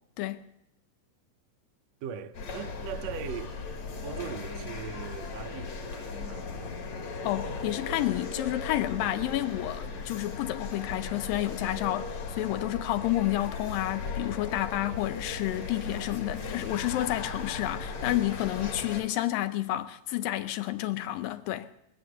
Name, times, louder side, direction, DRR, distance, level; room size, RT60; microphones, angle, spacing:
voice 1, 0.2-0.5 7.2-21.7, left 15 dB, 85° left, 2.6 m, -30 dB
voice 2, 2.0-3.5 4.0-6.6, right 8 dB, 75° right, 1.6 m, -40 dB
sound 1, 2.3-19.0, left 4 dB, 55° left, 3.1 m, -37 dB
22.5 x 7.8 x 7.7 m
omnidirectional pair, 4.0 m